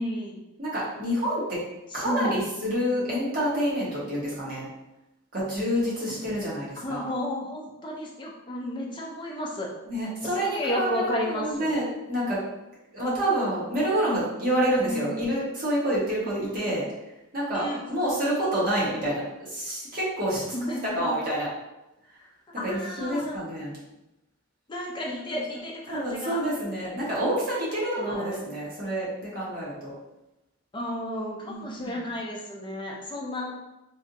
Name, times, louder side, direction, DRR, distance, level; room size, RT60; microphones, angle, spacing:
voice 1, 0.0-0.4 1.9-2.4 6.1-6.2 6.8-9.7 10.3-11.7 14.6-15.2 16.2-16.7 17.5-17.8 20.5-21.1 22.6-23.4 24.7-26.4 28.0-28.6 30.7-33.6, equal, 20° left, -2 dB, 0.6 m, -32 dB
voice 2, 0.6-1.6 1.9-4.7 5.3-7.1 9.9-12.4 12.9-16.8 17.3-20.4 21.0-21.5 22.6-23.8 25.3-25.6 25.9-29.9 31.4-32.0, equal, 40° right, -8 dB, 1.3 m, -28 dB
3.3 x 2.8 x 2.7 m, 0.95 s
head